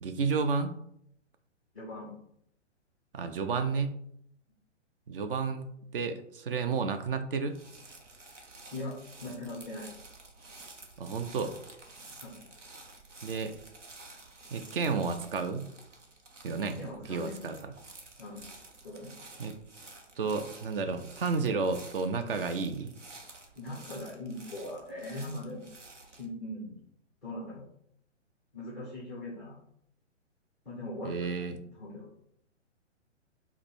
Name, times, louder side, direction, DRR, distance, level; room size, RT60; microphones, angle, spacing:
voice 1, 0.0-0.8 3.1-4.0 5.1-7.6 11.0-11.5 13.2-13.6 14.5-15.7 16.4-16.8 17.1-17.7 19.4-19.6 20.2-22.9 31.0-31.6, right 4 dB, 50° right, 9 dB, 0.5 m, -31 dB
voice 2, 1.7-2.1 8.7-8.9 9.2-9.9 12.2-12.4 16.8-17.4 18.2-18.4 18.8-19.1 23.6-25.6 26.0-26.7 27.2-27.6 28.5-29.6 30.6-32.1, left 1 dB, ahead, -6 dB, 0.3 m, -40 dB
sound 1, 7.5-26.3, right 3 dB, 80° right, 1.0 m, -51 dB
4.7 x 2.2 x 4.6 m, 0.72 s
figure-of-eight pair, 120°, 36 cm